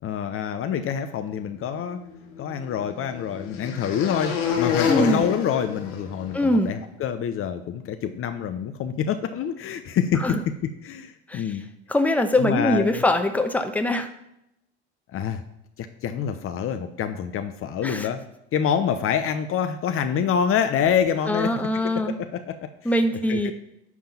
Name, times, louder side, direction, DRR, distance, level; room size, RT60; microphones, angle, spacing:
voice 1, 0.0-2.0 2.4-11.7 12.4-13.0 15.1-15.4 15.8-18.2 18.5-22.9 23.3-23.5, left 8 dB, 45° left, 8 dB, 0.8 m, -26 dB
sound 1, 1.9-6.5, left 7 dB, 75° left, 1.7 m, -29 dB
voice 2, 4.9-5.2 6.3-6.7 10.2-10.4 11.3-11.6 11.9-14.1 17.8-18.1 21.2-22.1 22.8-23.5, left 1 dB, 5° left, 6 dB, 1.0 m, -22 dB
10.5 x 3.7 x 7.2 m, 0.81 s
hypercardioid pair, 70°, 31 cm